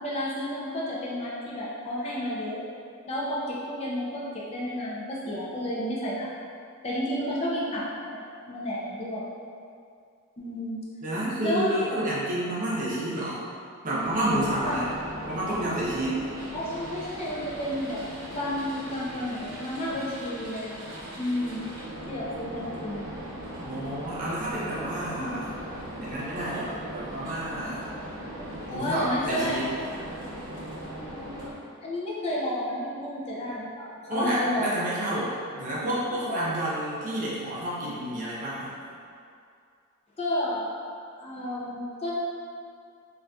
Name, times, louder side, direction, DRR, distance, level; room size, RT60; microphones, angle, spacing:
voice 1, 0.0-2.6 3.1-6.3 6.8-9.3 10.4-10.8 11.4-12.0 14.6-14.8 16.5-18.0 18.3-21.7 22.1-23.0 25.2-25.4 28.7-29.6 31.8-34.8 36.3-36.5 40.2-40.7 41.2-42.1, left 1 dB, 30° left, -6 dB, 0.4 m, -31 dB
voice 2, 11.0-13.4 13.8-14.9 15.3-16.3 23.6-25.5 26.0-27.9 28.7-29.7 34.1-38.7, right 1 dB, 40° right, -8 dB, 0.7 m, -30 dB
sound 1, 14.0-31.5, right 1 dB, 90° right, 0.7 m, -39 dB
3.8 x 2.4 x 2.2 m, 2.4 s
head